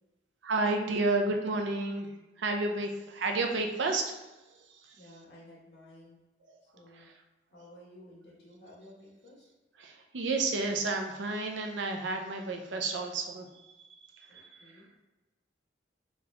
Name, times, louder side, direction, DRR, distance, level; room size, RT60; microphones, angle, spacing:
voice 1, 0.4-2.1 2.4-4.2 4.7-5.0 6.5-6.6 6.9-7.1 9.8-14.8, right 3 dB, 80° right, 3 dB, 0.6 m, -31 dB
voice 2, 4.9-6.2 6.6-7.1 7.5-9.5 14.3-14.9, left 1 dB, 60° left, -6 dB, 1.5 m, -54 dB
4.0 x 2.9 x 3.4 m, 1.1 s
head